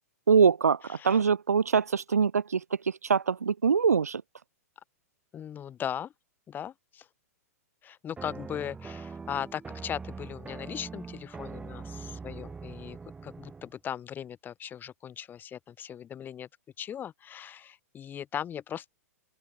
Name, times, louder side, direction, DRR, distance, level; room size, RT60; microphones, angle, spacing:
voice 1, 0.3-4.2, right 6 dB, 70° right, 2.6 m, -24 dB
voice 2, 5.3-6.1 6.5-7.0 7.8-13.0 13.2-16.5 16.8-18.9, left 9 dB, 20° left, 6.3 m, -38 dB
sound 1, 8.2-13.7, right 4 dB, 10° right, 5.2 m, -42 dB
open air
figure-of-eight pair, 105°, 9 cm